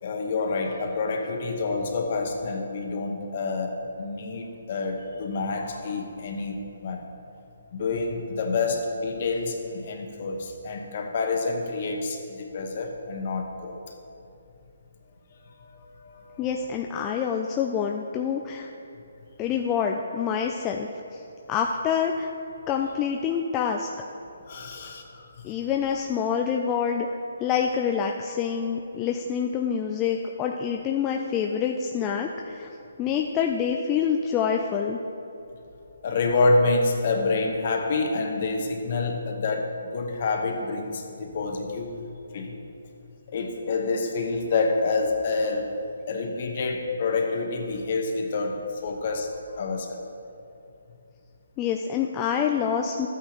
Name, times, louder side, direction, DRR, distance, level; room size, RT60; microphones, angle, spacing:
voice 1, 0.0-7.1 7.7-13.8 15.6-16.5 24.5-25.4 36.0-41.9 42.3-42.6 43.3-45.7 46.1-49.3 49.5-50.0, left 3 dB, 45° left, 3 dB, 1.1 m, -28 dB
voice 2, 16.4-18.7 19.4-21.2 21.5-22.3 22.7-23.9 25.4-27.1 27.4-32.7 33.0-35.0 51.6-53.1, left 7 dB, 20° left, 2 dB, 0.3 m, -26 dB
12.5 x 8.6 x 3.0 m, 2.8 s
hypercardioid pair, 155°, 0 cm